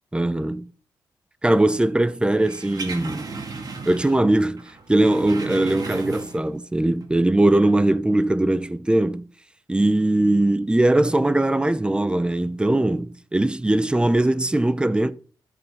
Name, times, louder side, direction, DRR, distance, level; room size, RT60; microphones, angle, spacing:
voice 1, 0.1-0.7 1.4-3.3 3.8-9.2 9.7-15.1, right 1 dB, 10° right, 0.7 m, -20 dB
sound 1, 2.4-4.3 4.6-6.6 6.9-7.1, right 4 dB, 50° right, 2.0 m, -35 dB
12.5 x 5.4 x 4.2 m
cardioid pair, 80°, 8 cm